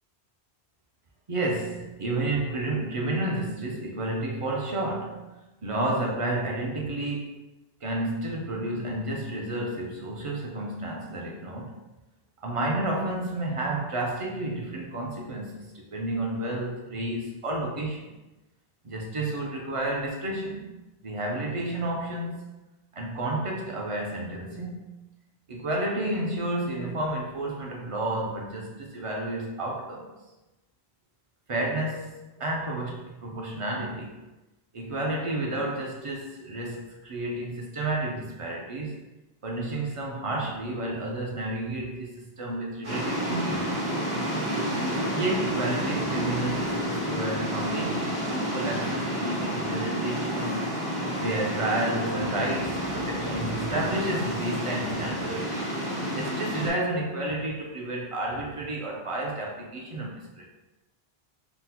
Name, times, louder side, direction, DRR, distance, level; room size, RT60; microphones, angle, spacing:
voice 1, 1.3-5.2 5.6-7.3 7.8-11.7 12.4-18.1 18.8-20.7 21.0-22.4 22.9-24.8 25.5-30.1 31.5-34.2 34.7-39.0 39.4-43.9 45.1-50.6 51.2-55.5 56.1-60.5, right 1 dB, 50° right, -1 dB, 0.4 m, -31 dB
sound 1, 42.8-56.7, equal, 75° right, 1.4 m, -30 dB
3.8 x 2.0 x 2.8 m, 1.0 s
omnidirectional pair, 1.1 m